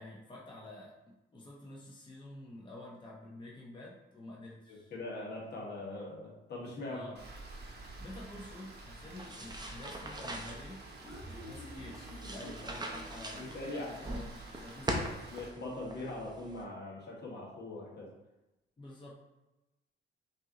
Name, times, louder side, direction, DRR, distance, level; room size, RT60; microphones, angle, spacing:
voice 1, 0.0-4.9 6.9-7.2 7.7-10.8 11.3-15.3 18.8-19.2, left 1 dB, 25° left, -4 dB, 0.9 m, -49 dB
voice 2, 4.7-7.0 12.4-12.5 13.4-13.9 14.9-18.1, left 2 dB, 60° left, -4 dB, 1.5 m, -42 dB
Rain, 7.2-15.5, right 2 dB, 55° right, 1.0 m, -50 dB
sound 1, 9.2-16.6, right 1 dB, 20° right, 0.7 m, -42 dB
Human voice, 10.6-13.5, equal, ahead, 1.4 m, -50 dB
5.4 x 2.7 x 2.9 m, 1.0 s
cardioid pair, 90°, 20 cm